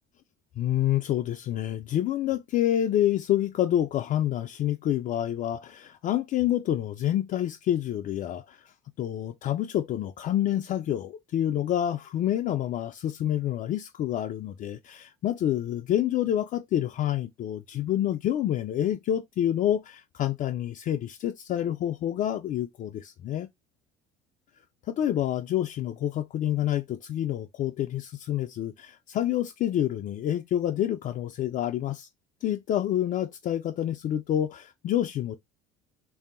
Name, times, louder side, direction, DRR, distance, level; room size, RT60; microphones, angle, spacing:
voice 1, 0.6-23.5 24.9-32.1 32.4-35.4, left 11 dB, 40° left, 0.4 m, -28 dB
3.1 x 2.7 x 2.4 m
supercardioid pair, 85°, 20 cm